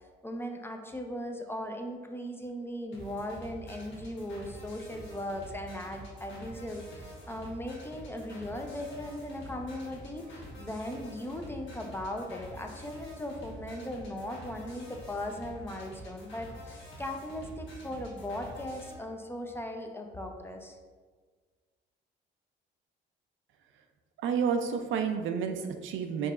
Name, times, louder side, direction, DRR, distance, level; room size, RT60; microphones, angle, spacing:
voice 1, 0.2-20.8, left 1 dB, 10° left, 3 dB, 0.4 m, -38 dB
sound 1, 2.9-18.9, equal, 70° left, 1.1 m, -47 dB
voice 2, 24.2-26.3, right 6 dB, 75° right, 6 dB, 0.4 m, -30 dB
4.6 x 2.8 x 2.4 m, 1.5 s
cardioid pair, 90°, 20 cm